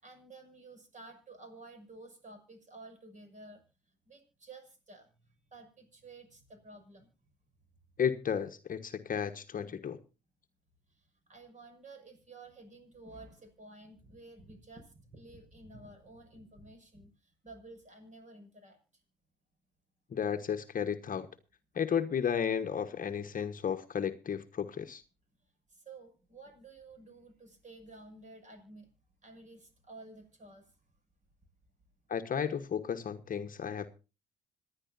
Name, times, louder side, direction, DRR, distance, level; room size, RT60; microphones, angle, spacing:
voice 1, 0.0-3.6 4.1-5.1 5.5-7.1 10.9-18.8 25.7-28.9 29.2-30.7, right 2 dB, 35° right, 6.3 m, -52 dB
voice 2, 8.0-10.0 20.1-21.3 21.7-25.0 32.1-33.9, left 8 dB, 40° left, 1.2 m, -33 dB
26.5 x 10.0 x 2.7 m
hypercardioid pair, 60°, 21 cm